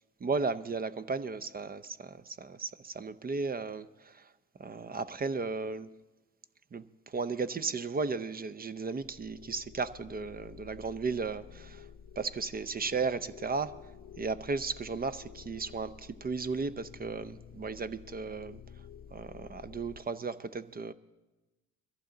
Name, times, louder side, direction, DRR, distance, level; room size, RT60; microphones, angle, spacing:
voice 1, 0.2-4.3 4.6-5.9 6.7-11.9 12.2-13.8 14.2-18.6 19.1-20.9, right 4 dB, 30° right, 14 dB, 0.6 m, -35 dB
sound 1, 9.0-20.0, left 7 dB, 65° left, 0.8 m, -51 dB
22.0 x 14.5 x 3.8 m, 1.1 s
cardioid pair, 90°, 30 cm